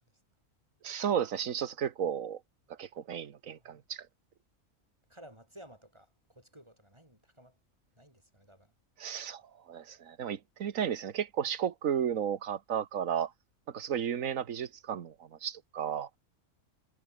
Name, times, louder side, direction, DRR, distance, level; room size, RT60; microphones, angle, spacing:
voice 1, 0.8-2.4 2.8-4.1 9.0-9.4 9.7-13.3 13.7-15.1 15.4-16.1, right 8 dB, 75° right, 1.5 m, -33 dB
voice 2, 3.4-3.8 5.1-7.6 8.0-8.7, right 1 dB, 20° right, 7.3 m, -55 dB
omnidirectional pair, 1.4 m